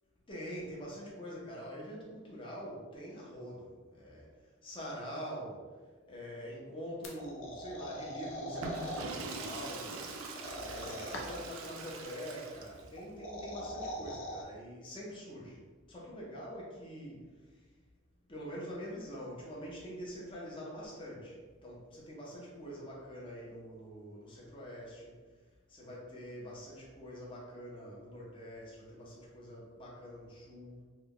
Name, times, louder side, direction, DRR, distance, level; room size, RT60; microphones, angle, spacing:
voice 1, 0.3-4.3 4.6-5.6 6.1-10.1 10.6-15.6 15.9-17.2 18.3-25.1 25.7-30.8, equal, 25° left, -4 dB, 0.8 m, -45 dB
sound 1, 7.0-9.0 10.3-11.5 13.0-14.4, equal, 65° left, 0.6 m, -41 dB
Water / Toilet flush, 8.5-13.0, right 3 dB, 75° right, 0.4 m, -43 dB
3.2 x 2.3 x 3.7 m, 1.4 s
head